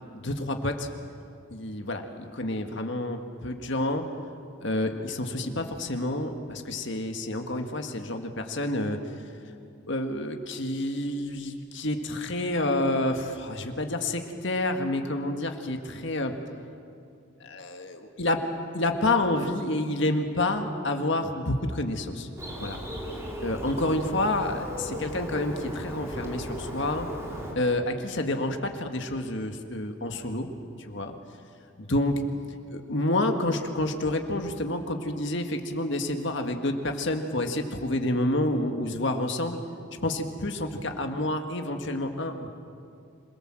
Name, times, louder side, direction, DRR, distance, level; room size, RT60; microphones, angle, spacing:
voice 1, 0.1-0.9 1.5-4.0 4.6-9.2 9.9-16.3 17.4-18.4 18.7-22.3 22.6-22.8 23.4-27.1 27.6-30.5 30.8-31.2 31.8-32.2 32.7-39.6 40.0-42.5, left 1 dB, 55° left, 5 dB, 1.8 m, -29 dB
Bird, 22.4-27.5, equal, 15° right, 3.1 m, -36 dB
26.5 x 18.5 x 7.7 m, 2.5 s
head